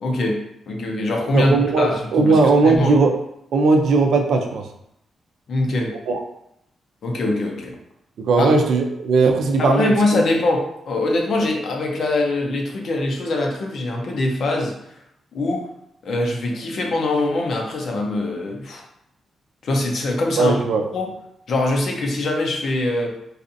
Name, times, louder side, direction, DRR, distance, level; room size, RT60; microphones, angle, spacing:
voice 1, 0.0-2.9 5.5-5.9 7.0-7.8 8.4-8.5 9.6-15.0 15.3-15.7 16.0-18.9 19.6-20.6 20.9-21.1 21.5-23.2, left 2 dB, 55° left, 1 dB, 0.6 m, -23 dB
voice 2, 1.3-3.1 3.5-4.7 6.1-6.2 8.2-10.2 20.4-20.8, right 3 dB, 75° right, 4 dB, 0.4 m, -18 dB
4.0 x 2.5 x 2.6 m, 0.78 s
wide cardioid pair, 150°, 0 cm